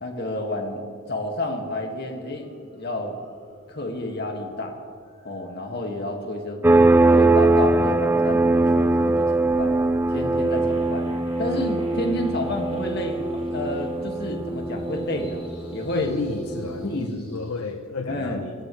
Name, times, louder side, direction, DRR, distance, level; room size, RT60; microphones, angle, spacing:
voice 1, 0.0-3.2 3.7-4.7 5.2-6.9 7.1-9.7 10.1-11.1 11.4-15.4 15.7-16.1 16.8-17.3 18.1-18.4, left 1 dB, 45° left, 2 dB, 2.1 m, -30 dB
sound 1, 1.7-1.9 2.3-17.7, left 1 dB, 25° left, 4.3 m, -51 dB
sound 2, 6.6-17.0, right 2 dB, 10° right, 0.3 m, -21 dB
voice 2, 15.9-18.5, left 4 dB, 80° left, 6 dB, 0.8 m, -31 dB
24.0 x 17.0 x 3.3 m, 2.1 s
head